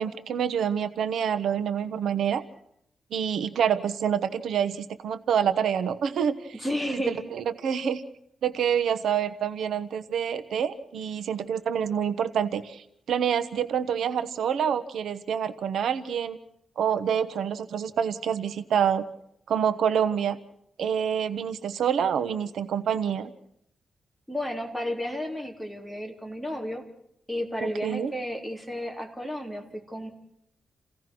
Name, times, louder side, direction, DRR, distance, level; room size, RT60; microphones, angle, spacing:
voice 1, 0.0-2.4 3.1-6.6 6.9-8.0 8.4-16.4 16.8-19.0 19.5-20.4 20.8-23.3 27.6-28.1, right 8 dB, 80° right, 12 dB, 1.1 m, -27 dB
voice 2, 6.5-7.2 24.3-26.8 27.3-30.1, equal, ahead, 1 dB, 3.3 m, -32 dB
29.0 x 17.0 x 6.1 m, 0.74 s
wide cardioid pair, 150°, 0 cm